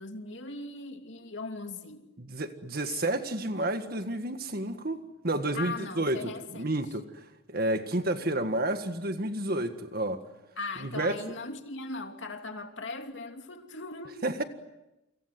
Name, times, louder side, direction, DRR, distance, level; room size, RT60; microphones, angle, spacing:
voice 1, 0.0-2.0 5.5-6.8 10.6-14.2, left 3 dB, 65° left, 2.9 m, -39 dB
voice 2, 2.2-7.2 7.5-10.2 10.8-11.2 14.2-14.4, right 1 dB, 50° right, 1.8 m, -30 dB
29.5 x 25.5 x 7.8 m
head